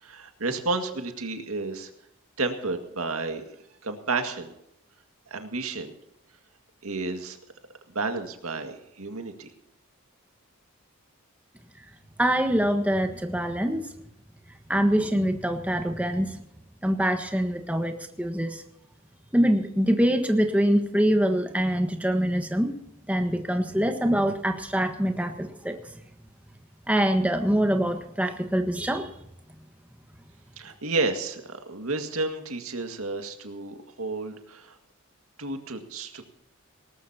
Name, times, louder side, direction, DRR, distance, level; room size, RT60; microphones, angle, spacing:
voice 1, 0.0-1.9 2.4-3.4 3.8-4.5 5.3-5.9 6.8-7.4 7.9-9.5 30.6-34.8 35.4-36.2, right 3 dB, 90° right, 6 dB, 2.0 m, -31 dB
voice 2, 12.2-13.9 14.7-16.4 16.8-18.6 19.3-22.7 23.1-25.8 26.9-29.1, equal, 5° right, 6 dB, 1.4 m, -24 dB
19.0 x 19.0 x 2.9 m, 0.80 s
head